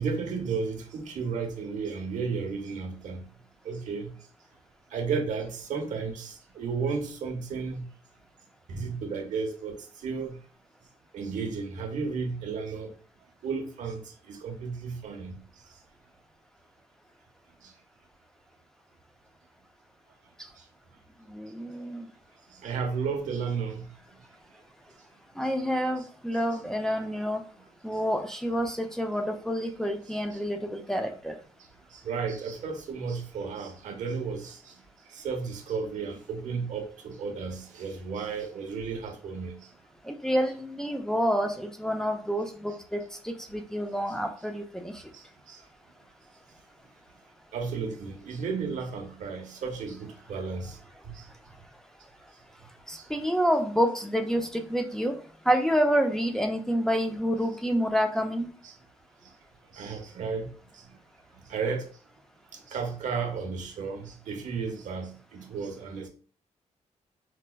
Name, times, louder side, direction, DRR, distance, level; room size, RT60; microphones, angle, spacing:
voice 1, 0.0-3.2 3.6-4.1 4.9-7.9 8.7-10.4 11.1-12.9 13.4-14.0 14.3-15.4 22.6-23.9 32.0-34.6 35.1-39.6 45.1-45.2 45.5-45.6 47.5-50.8 51.1-51.2 58.6-58.7 59.7-60.5 61.5-61.9 62.7-66.1, right 5 dB, 85° right, 0.7 m, -33 dB
voice 2, 21.3-22.1 25.4-27.4 27.8-31.4 40.0-45.0 52.9-55.2 55.4-58.5, equal, 5° left, 0.4 m, -28 dB
4.5 x 2.1 x 2.2 m
wide cardioid pair, 125°, 13 cm